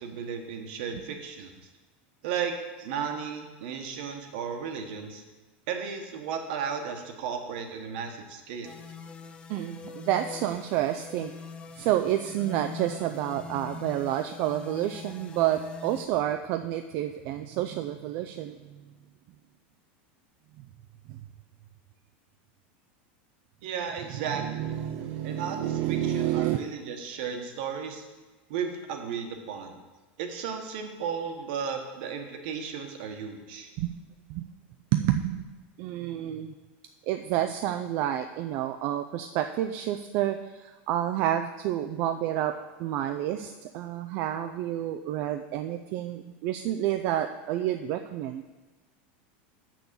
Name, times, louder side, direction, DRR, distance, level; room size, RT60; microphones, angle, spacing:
voice 1, 0.0-1.5 2.2-2.5 2.8-5.2 5.7-8.8 23.6-24.5 25.2-28.0 28.5-29.8 30.2-33.7, right 7 dB, 60° right, 5 dB, 1.3 m, -34 dB
sound 1, 8.6-16.0, left 6 dB, 15° left, 0.5 m, -43 dB
voice 2, 9.5-11.3 11.7-18.9 21.1-21.2 24.2-26.6 33.8-33.9 34.3-34.4 34.9-35.5 35.8-36.5 37.0-48.4, right 12 dB, 40° right, 7 dB, 0.4 m, -29 dB
6.9 x 6.1 x 6.9 m, 1.2 s
supercardioid pair, 165°, 6 cm